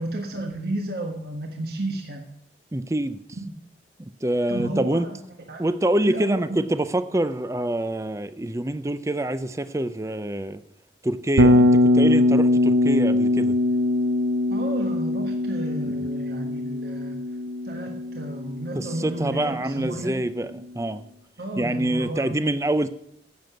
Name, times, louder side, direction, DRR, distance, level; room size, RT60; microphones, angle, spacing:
voice 1, 0.0-2.2 3.4-3.5 4.5-5.6 6.0-6.6 14.5-17.2 17.6-20.1 21.4-22.4, right 1 dB, 55° right, 1.3 m, -32 dB
voice 2, 2.7-3.2 4.0-5.1 5.6-10.6 11.0-13.6 15.8-16.1 18.7-21.0 21.6-22.9, right 1 dB, 15° right, 0.5 m, -26 dB
Bass guitar, 11.4-19.5, left 1 dB, 85° right, 0.9 m, -21 dB
10.5 x 7.6 x 8.1 m
head